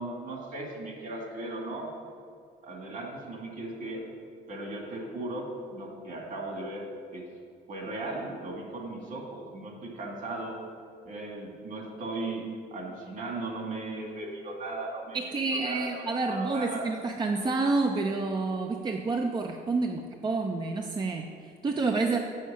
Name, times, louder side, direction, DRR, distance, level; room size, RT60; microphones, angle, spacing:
voice 1, 0.0-1.9 2.6-4.0 4.5-6.9 7.1-7.2 7.7-10.6 11.0-15.2 15.5-15.9 16.3-16.8, right 2 dB, 55° right, 0 dB, 2.2 m, -37 dB
voice 2, 15.1-22.2, right 3 dB, 25° right, 3 dB, 0.6 m, -29 dB
6.5 x 6.3 x 6.9 m, 2.3 s
cardioid pair, 110°, 17 cm